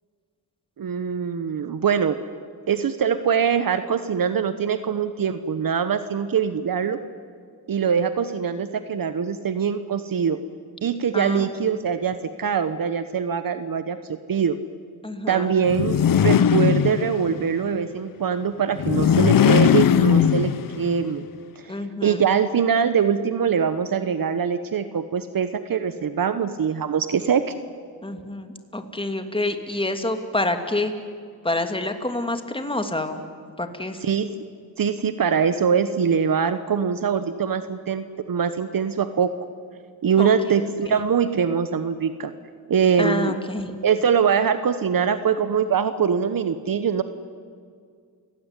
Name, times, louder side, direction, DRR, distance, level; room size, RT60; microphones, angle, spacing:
voice 1, 0.8-2.2 2.7-7.0 7.7-10.4 10.8-14.0 14.3-14.6 15.3-20.5 20.8-21.3 21.6-21.7 22.0-27.4 34.0-34.3 34.8-39.3 40.0-42.3 42.7-43.3 43.8-47.0, right 7 dB, 60° right, 11 dB, 1.3 m, -23 dB
voice 2, 11.1-11.5 15.0-15.5 21.7-22.2 28.0-30.9 31.4-33.2 33.6-34.0 40.2-40.3 40.6-41.0 43.0-43.7, left 2 dB, 15° left, 7 dB, 2.8 m, -27 dB
sound 1, 15.7-17.4 18.8-20.9, left 8 dB, 55° left, 0.9 m, -19 dB
30.0 x 17.0 x 9.9 m, 2.1 s
cardioid pair, 75°, 39 cm